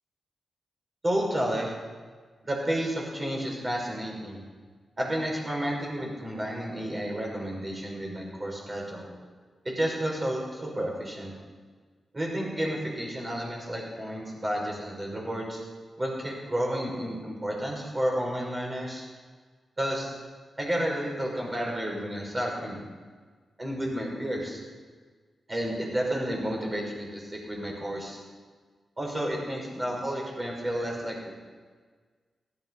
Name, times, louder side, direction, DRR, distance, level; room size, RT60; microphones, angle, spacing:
voice 1, 1.0-1.7 2.4-4.4 5.0-9.1 9.6-11.3 12.1-15.6 16.0-19.0 19.8-20.1 20.6-22.8 23.6-24.6 25.5-28.2 29.0-31.3, equal, 25° right, -2 dB, 5.5 m, -31 dB
16.0 x 12.0 x 5.5 m, 1.5 s
cardioid pair, 90°, 0 cm